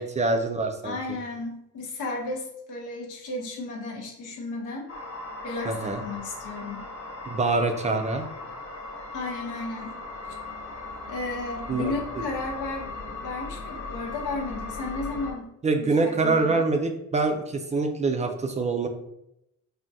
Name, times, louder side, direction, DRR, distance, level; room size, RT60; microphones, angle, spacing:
voice 1, 0.0-1.0 5.7-6.0 7.3-8.3 11.7-12.0 15.6-18.9, right 3 dB, 25° right, 5 dB, 0.3 m, -25 dB
voice 2, 0.8-4.9 5.4-6.9 9.1-10.0 11.1-12.9 13.2-15.5 15.8-16.6, left 3 dB, 90° left, -1 dB, 0.9 m, -34 dB
sound 1, 4.9-15.3, left 3 dB, 50° left, 0.9 m, -38 dB
3.4 x 2.2 x 2.6 m, 0.83 s
cardioid pair, 90°, 30 cm